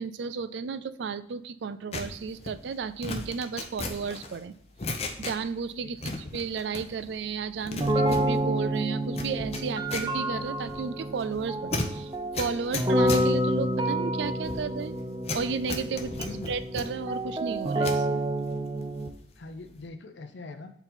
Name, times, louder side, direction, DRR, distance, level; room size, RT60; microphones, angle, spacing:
voice 1, 0.0-4.5 5.2-15.0 15.3-18.2, right 5 dB, 80° right, 14 dB, 0.4 m, -33 dB
sound 1, 1.9-5.7 6.0-7.2 7.4-18.1 18.5-19.3 19.6-19.9, left 3 dB, 35° left, 0.6 m, -37 dB
voice 2, 5.8-6.2 16.0-16.6 19.4-20.7, left 3 dB, 80° left, 7 dB, 0.6 m, -43 dB
sound 2, 7.8-19.1, right 1 dB, 25° right, 0.5 m, -29 dB
4.5 x 3.9 x 5.5 m, 0.68 s
head